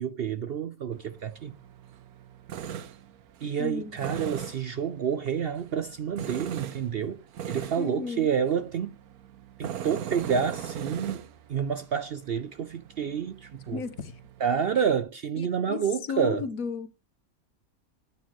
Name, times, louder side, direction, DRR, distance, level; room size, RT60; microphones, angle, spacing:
voice 1, 0.0-1.6 3.4-9.0 9.6-13.8 14.4-16.4, right 7 dB, 60° right, 0.6 m, -29 dB
Tools, 0.9-15.0, right 9 dB, 90° right, 1.3 m, -41 dB
voice 2, 3.6-4.0 7.8-8.3 13.7-14.2 15.4-15.8 16.1-16.9, left 6 dB, 70° left, 1.4 m, -34 dB
11.0 x 8.5 x 3.0 m
omnidirectional pair, 1.5 m